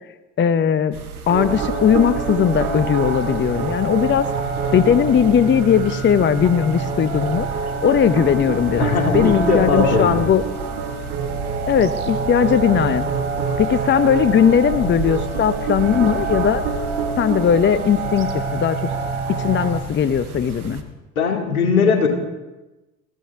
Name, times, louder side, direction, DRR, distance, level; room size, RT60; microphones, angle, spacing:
voice 1, 0.4-1.0 1.3-4.3 4.7-7.5 7.8-10.4 11.7-13.1 13.6-16.6 17.2-18.9 19.4-20.8, left 8 dB, 25° left, 14 dB, 0.8 m, -18 dB
sound 1, 0.9-20.8, right 4 dB, 85° right, 1.3 m, -34 dB
sound 2, 1.3-19.7, right 5 dB, 50° right, 2.4 m, -26 dB
voice 2, 8.8-10.2 21.2-22.1, left 5 dB, 80° left, 3 dB, 2.2 m, -19 dB
21.5 x 15.0 x 3.5 m, 1.1 s
figure-of-eight pair, 60°, 42 cm